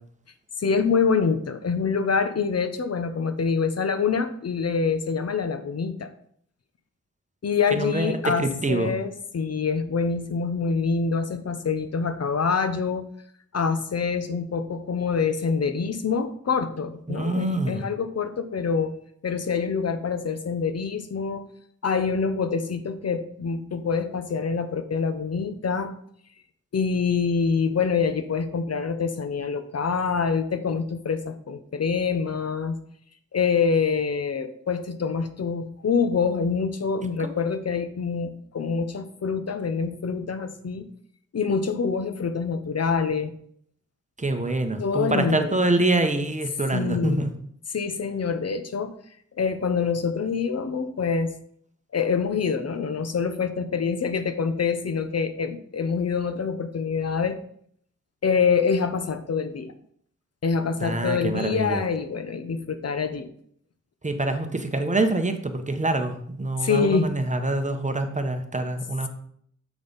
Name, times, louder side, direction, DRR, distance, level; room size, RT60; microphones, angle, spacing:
voice 1, 0.6-6.1 7.4-13.1 13.5-18.9 19.2-21.4 21.8-25.9 26.7-32.8 33.3-40.9 41.3-43.3 44.8-45.6 46.7-47.3 47.7-48.9 49.4-51.3 51.9-57.4 58.2-59.7 60.4-63.3 66.6-67.1, left 5 dB, 55° left, 9 dB, 0.6 m, -25 dB
voice 2, 7.7-8.9 17.1-17.8 44.2-47.3 60.8-61.8 64.0-69.1, right 2 dB, 25° right, 6 dB, 0.8 m, -25 dB
7.1 x 5.3 x 3.9 m, 0.65 s
wide cardioid pair, 100°, 31 cm